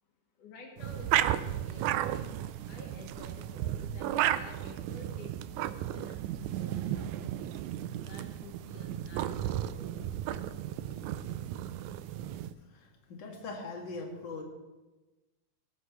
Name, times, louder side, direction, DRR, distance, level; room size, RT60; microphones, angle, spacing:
voice 1, 0.4-2.3 2.6-7.6 7.9-11.2, left 3 dB, 70° left, 1 dB, 2.8 m, -52 dB
sound 1, 0.8-12.5, right 12 dB, 85° right, 1.7 m, -34 dB
voice 2, 12.6-14.4, left 3 dB, 35° left, -1 dB, 2.7 m, -41 dB
17.5 x 15.5 x 3.2 m, 1.1 s
omnidirectional pair, 3.9 m